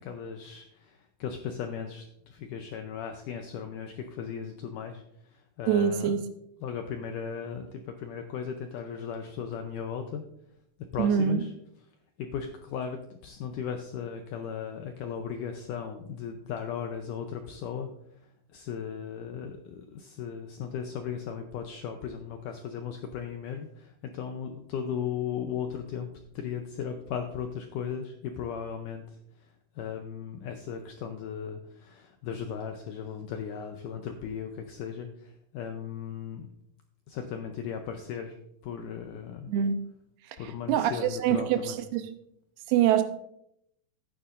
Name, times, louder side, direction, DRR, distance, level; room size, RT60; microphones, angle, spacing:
voice 1, 0.0-6.1 6.6-10.2 10.9-11.5 12.2-17.9 18.5-26.1 26.4-36.5 37.1-38.4 38.6-39.5 40.4-41.8, left 7 dB, 85° left, 5 dB, 1.8 m, -37 dB
voice 2, 5.7-6.2 11.0-11.4 39.5-39.8 40.7-42.0 42.7-43.0, right 9 dB, 90° right, 9 dB, 2.7 m, -24 dB
12.0 x 9.7 x 2.5 m, 0.74 s
omnidirectional pair, 4.6 m